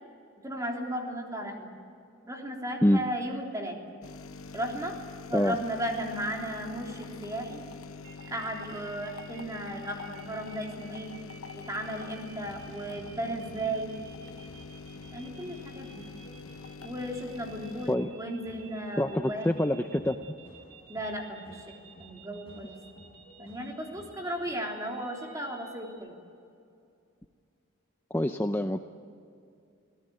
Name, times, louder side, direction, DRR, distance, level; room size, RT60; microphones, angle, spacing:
voice 1, 0.4-1.7 2.3-3.8 4.5-5.0 5.3-7.6 8.3-11.1 11.5-13.9 15.1-16.0 16.8-19.5 20.9-21.6 22.0-22.7 23.4-26.1, right 1 dB, 15° right, 0 dB, 3.5 m, -35 dB
sound 1, 4.0-18.0, left 4 dB, 90° left, 1.0 m, -45 dB
sound 2, 8.0-25.9, right 6 dB, 75° right, 4.3 m, -54 dB
sound 3, 12.4-24.5, equal, 25° left, 7.5 m, -55 dB
voice 2, 19.0-20.2 28.1-28.8, left 1 dB, 10° left, 6 dB, 0.6 m, -25 dB
27.0 x 18.0 x 9.5 m, 2.5 s
head